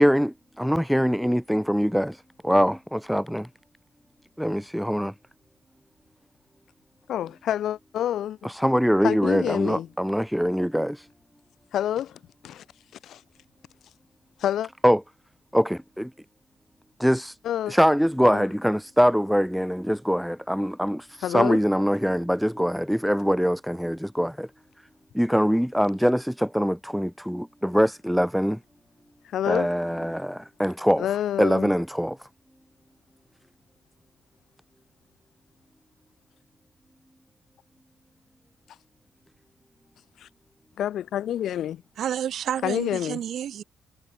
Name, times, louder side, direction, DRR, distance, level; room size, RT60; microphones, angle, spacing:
voice 1, 0.0-3.5 4.4-5.1 8.4-11.1 14.8-15.0 15.5-16.1 17.0-17.3 17.7-24.5 25.1-28.6 29.5-31.1 31.4-32.3, equal, ahead, 1.9 m, -23 dB
voice 2, 7.1-8.5 9.0-9.9 11.7-12.6 13.0-13.2 14.4-14.7 17.4-17.8 18.3-18.4 21.2-21.6 29.3-29.7 31.0-31.7 40.2-40.3 40.8-41.8 42.6-43.2, left 11 dB, 75° left, 2.5 m, -28 dB
voice 3, 42.0-43.6, right 10 dB, 70° right, 6.7 m, -30 dB
supercardioid pair, 60°, 0 cm